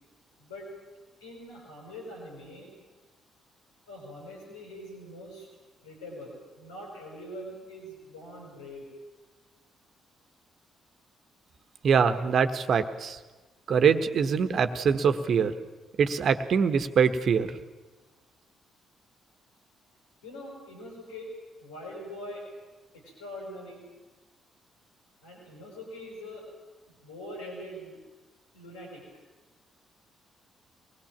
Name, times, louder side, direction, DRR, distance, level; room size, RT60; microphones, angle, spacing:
voice 1, 0.4-0.7 1.2-2.7 3.9-5.5 5.8-8.9 20.2-21.3 21.6-22.5 22.9-23.8 25.2-26.5 27.0-28.0 28.5-29.1, left 1 dB, 85° left, -2 dB, 5.5 m, -43 dB
voice 2, 11.8-13.2 13.7-15.5 16.0-17.5, right 6 dB, 55° right, 9 dB, 1.4 m, -23 dB
23.5 x 20.0 x 7.4 m, 1.2 s
figure-of-eight pair, 40°, 0 cm